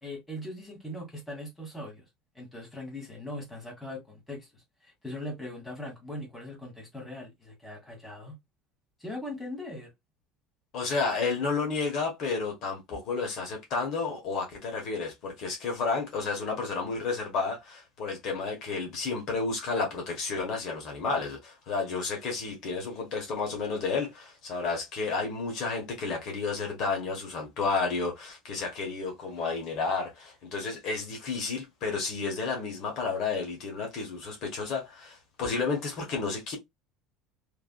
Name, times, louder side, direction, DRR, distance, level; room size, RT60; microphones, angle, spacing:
voice 1, 0.0-2.0 2.3-8.3 9.0-9.9, left 1 dB, 5° left, 1.5 m, -40 dB
voice 2, 10.7-36.6, left 4 dB, 50° left, 1.1 m, -31 dB
3.3 x 2.5 x 2.2 m
cardioid pair, 150°, 0 cm